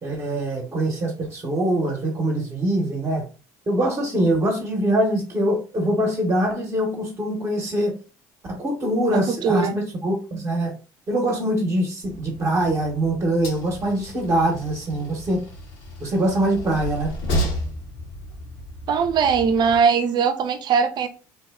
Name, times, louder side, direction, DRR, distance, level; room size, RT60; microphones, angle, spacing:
voice 1, 0.0-3.3 3.7-7.9 8.5-10.7 11.1-15.4 16.0-17.1, right 1 dB, 35° right, 1.0 m, -23 dB
voice 2, 9.1-9.8 18.9-21.1, right 6 dB, 50° right, 0.6 m, -20 dB
Train, 12.0-19.8, equal, 70° left, 1.1 m, -33 dB
2.8 x 2.1 x 3.5 m
hypercardioid pair, 75°, 9 cm